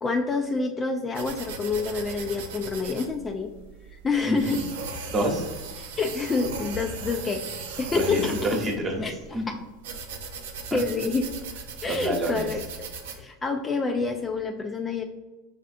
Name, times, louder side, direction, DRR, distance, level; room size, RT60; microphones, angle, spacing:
voice 1, 0.0-3.5 4.0-4.6 6.0-7.4 7.8-8.3 9.0-9.1 10.7-11.2 11.8-12.9 13.2-15.0, left 4 dB, 20° left, 4 dB, 0.4 m, -27 dB
sound 1, 1.1-13.2, right 4 dB, 90° right, 0.6 m, -38 dB
voice 2, 4.2-4.6 5.1-5.4 7.9-9.1 9.3-9.5 10.7-10.8 11.8-12.5, right 1 dB, 25° right, 1 dB, 1.0 m, -28 dB
5.6 x 3.2 x 2.5 m, 1.1 s
supercardioid pair, 110°, 0 cm